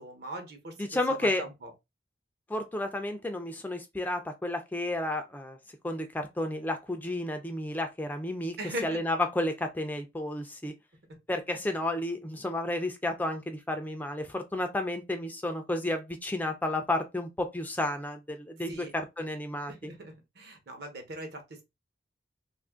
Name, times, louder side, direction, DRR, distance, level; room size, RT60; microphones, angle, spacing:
voice 1, 0.0-1.7 8.6-9.0 18.7-18.9 19.7-21.6, right 1 dB, 60° right, 1.0 m, -40 dB
voice 2, 0.8-1.4 2.5-5.6 5.8-8.6 8.8-10.7 11.3-19.9, left 1 dB, 10° left, 0.4 m, -32 dB
2.5 x 2.5 x 3.6 m
head